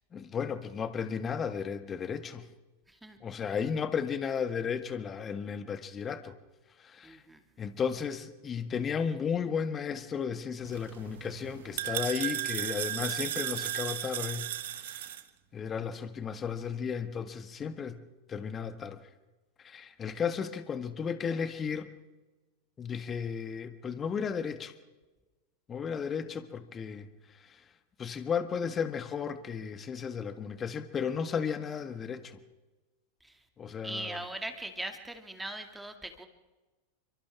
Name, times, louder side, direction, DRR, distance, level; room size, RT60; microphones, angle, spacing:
voice 1, 0.1-2.5 3.2-6.4 6.8-7.2 7.6-15.1 15.5-18.0 18.3-19.0 19.6-21.9 22.8-24.7 25.7-27.1 27.4-27.6 28.0-32.4 33.6-34.2, left 6 dB, 25° left, 1.6 m, -34 dB
voice 2, 7.0-7.4 33.2-33.3 33.8-36.3, right 1 dB, 5° right, 2.4 m, -40 dB
sound 1, 10.6-15.2, right 13 dB, 55° right, 1.2 m, -35 dB
29.5 x 24.5 x 3.6 m
figure-of-eight pair, 90°, 0 cm